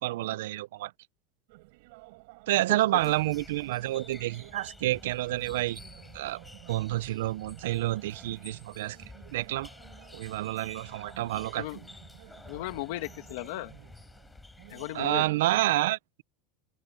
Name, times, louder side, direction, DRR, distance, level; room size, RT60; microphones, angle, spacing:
voice 1, 0.0-0.9 2.5-5.8 6.1-6.4 6.7-9.0 9.3-9.7 10.1-11.7 14.9-16.2, right 16 dB, 85° right, 0.4 m, -29 dB
sound 1, 1.5-15.6, right 25 dB, 65° right, 4.4 m, -53 dB
sound 2, 2.9-15.4, left 2 dB, 5° left, 7.8 m, -51 dB
voice 2, 12.5-13.7 14.7-15.2, left 18 dB, 70° left, 1.7 m, -36 dB
supercardioid pair, 155°, 0 cm